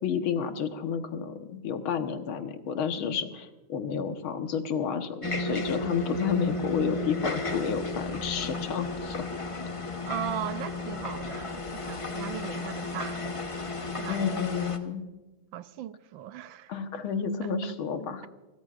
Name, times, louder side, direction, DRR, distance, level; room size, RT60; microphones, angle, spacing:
voice 1, 0.0-9.2 14.1-15.1 16.7-18.3, left 7 dB, 85° left, 2.1 m, -31 dB
sound 1, 5.2-14.8, left 2 dB, 30° left, 0.6 m, -33 dB
voice 2, 10.0-13.3 14.0-14.2 15.5-16.7, right 11 dB, 75° right, 1.4 m, -38 dB
29.5 x 14.0 x 2.5 m
omnidirectional pair, 2.2 m